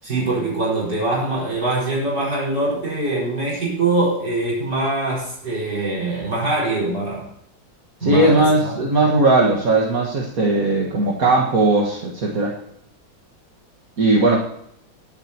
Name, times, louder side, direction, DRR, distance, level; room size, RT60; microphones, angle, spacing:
voice 1, 0.0-7.3 8.0-8.7, right 2 dB, 70° right, -6 dB, 5.7 m, -23 dB
voice 2, 8.0-12.5 14.0-14.4, right 2 dB, 50° right, -1 dB, 2.0 m, -18 dB
23.0 x 8.6 x 3.0 m, 0.74 s
omnidirectional pair, 2.0 m